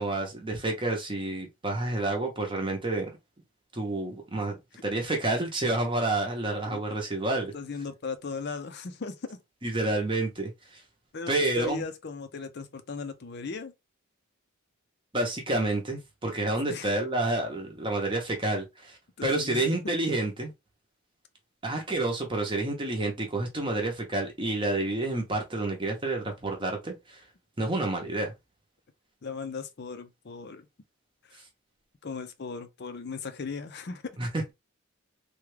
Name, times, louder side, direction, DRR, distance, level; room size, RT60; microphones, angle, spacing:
voice 1, 0.0-3.1 3.7-7.5 9.6-10.8 11.3-11.8 15.1-20.5 21.6-27.2 27.6-28.3 34.2-34.5, right 2 dB, 25° right, 0.7 m, -29 dB
voice 2, 7.5-9.4 11.1-11.3 11.6-13.7 16.7-16.9 19.2-20.0 29.2-30.7 31.3-31.4 32.0-34.2, left 4 dB, 50° left, 0.5 m, -37 dB
3.5 x 2.3 x 3.2 m
head